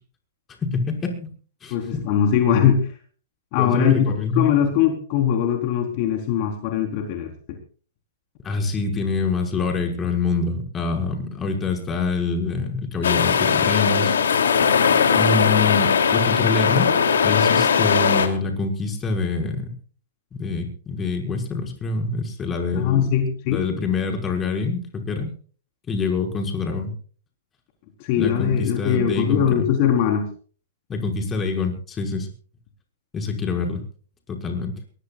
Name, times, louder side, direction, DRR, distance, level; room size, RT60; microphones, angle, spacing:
voice 1, 0.6-1.1 1.6-1.8 3.6-4.5 8.4-14.2 15.1-16.9 17.2-19.7 20.3-23.2 23.5-25.3 25.9-26.9 28.2-29.7 30.9-32.3 33.1-33.8 34.3-34.8, left 4 dB, 20° left, 2 dB, 5.9 m, -25 dB
voice 2, 1.7-2.9 3.5-7.6 22.7-23.6 28.0-30.3, left 9 dB, 45° left, 3 dB, 4.1 m, -21 dB
sound 1, 13.0-18.3, left 6 dB, 75° left, 3.1 m, -19 dB
22.5 x 20.0 x 2.5 m, 0.42 s
hypercardioid pair, 115°, 0 cm